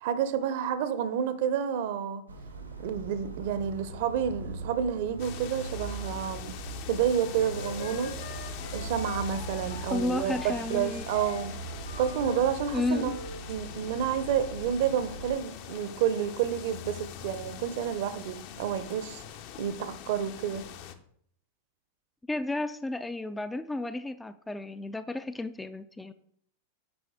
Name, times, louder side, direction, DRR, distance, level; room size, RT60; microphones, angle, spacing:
voice 1, 0.0-2.2 2.8-6.5 6.9-8.1 8.7-11.5 12.0-13.1 13.5-19.2 19.6-20.6, right 8 dB, 50° right, 0.7 m, -29 dB
sound 1, 2.3-15.3, right 2 dB, 80° right, 1.1 m, -41 dB
sound 2, 5.2-20.9, left 9 dB, 45° left, 0.6 m, -43 dB
Wind instrument woodwind instrument, 7.1-9.9 10.3-13.4, left 4 dB, 80° left, 1.5 m, -42 dB
voice 2, 9.9-11.0 12.7-13.2 22.3-26.1, left 2 dB, 10° left, 0.4 m, -32 dB
7.8 x 5.3 x 3.6 m
figure-of-eight pair, 90°, 0 cm